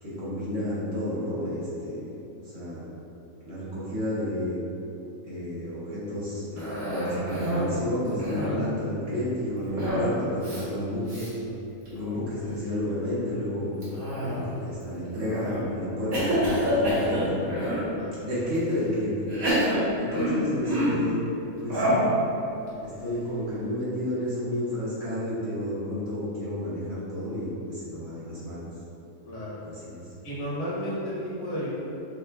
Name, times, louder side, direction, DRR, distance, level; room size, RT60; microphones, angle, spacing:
voice 1, 0.0-2.1 2.5-2.8 3.4-4.6 5.2-11.3 11.9-13.7 14.2-17.5 18.2-19.1 19.9-21.2 21.6-22.0 22.8-28.7 29.6-30.0, left 1 dB, 50° right, -10 dB, 1.3 m, -31 dB
Cough, 6.6-7.8 8.1-8.7 9.8-10.1 10.4-10.6 11.1-11.3 11.9-12.3 13.8-14.6 15.2-15.6 16.1-17.9 18.5-18.6 19.3-21.1 21.7-22.1, equal, 85° right, 1.6 m, -27 dB
voice 2, 30.2-31.7, equal, 75° left, -8 dB, 1.5 m, -32 dB
6.6 x 2.5 x 2.3 m, 2.9 s
omnidirectional pair, 1.5 m